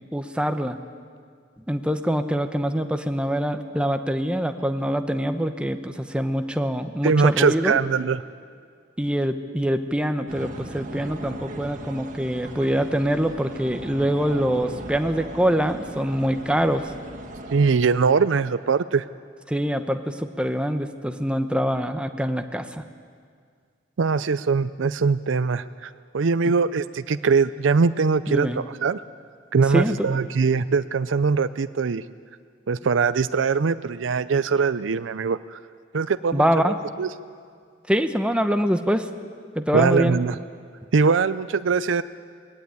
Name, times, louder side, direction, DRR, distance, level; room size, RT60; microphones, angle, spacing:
voice 1, 0.1-0.8 1.7-7.8 9.0-16.9 19.5-22.8 28.3-28.6 29.7-30.1 36.3-36.8 37.9-39.1 39.5-40.2, equal, 5° right, 7 dB, 0.9 m, -24 dB
voice 2, 7.0-8.2 17.5-19.1 24.0-29.0 29.5-32.0 32.7-35.6 35.9-37.1 39.7-40.4 40.9-42.0, right 5 dB, 75° right, 13 dB, 0.5 m, -22 dB
sound 1, 10.3-17.8, right 1 dB, 45° right, 1.5 m, -38 dB
20.0 x 15.5 x 9.5 m, 2.1 s
head